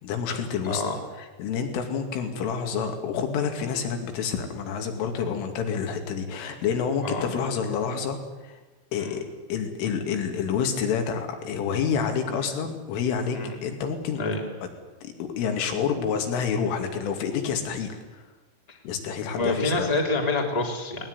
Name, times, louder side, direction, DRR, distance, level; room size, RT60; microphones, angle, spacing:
voice 1, 0.0-0.8 1.4-8.2 8.4-8.6 8.9-14.2 15.0-18.2 18.8-19.9, left 6 dB, 80° left, 5 dB, 4.9 m, -28 dB
voice 2, 0.6-1.0 7.0-7.3 9.0-9.2 13.3-13.5 14.2-14.4 18.7-18.8 19.3-21.1, left 2 dB, 10° left, 1 dB, 2.6 m, -27 dB
20.0 x 19.5 x 9.7 m, 1.2 s
omnidirectional pair, 5.7 m